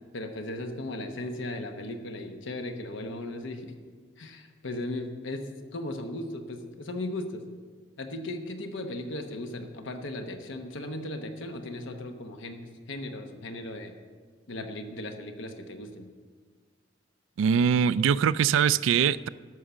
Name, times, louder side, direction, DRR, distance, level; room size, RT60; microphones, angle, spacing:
voice 1, 0.1-3.7 4.2-5.5 5.7-7.4 8.0-14.0 14.5-16.1, left 1 dB, 80° left, 5 dB, 1.0 m, -37 dB
voice 2, 17.4-19.3, right 7 dB, 85° right, 17 dB, 0.3 m, -22 dB
12.5 x 6.4 x 7.0 m, 1.5 s
head